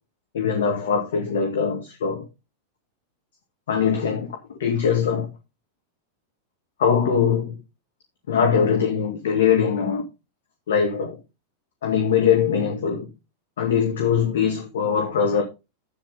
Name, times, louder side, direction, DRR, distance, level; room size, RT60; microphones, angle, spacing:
voice 1, 0.3-2.2 3.7-5.3 6.8-7.5 8.3-10.0 10.7-11.2 11.8-13.1 13.6-15.4, left 7 dB, 60° left, 2.0 m, -22 dB
10.5 x 8.6 x 3.9 m
figure-of-eight pair, 90°, 0 cm